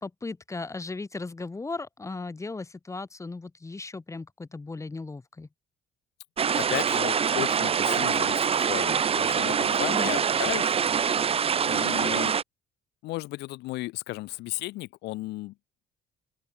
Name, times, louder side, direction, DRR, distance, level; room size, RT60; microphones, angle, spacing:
voice 1, 0.0-5.5 9.9-10.1, left 3 dB, 15° left, 2.4 m, -36 dB
sound 1, 6.4-12.4, right 7 dB, 35° right, 1.0 m, -25 dB
voice 2, 6.6-10.8 11.7-12.3 13.0-15.5, left 19 dB, 85° left, 1.9 m, -34 dB
open air
cardioid pair, 110°, 17 cm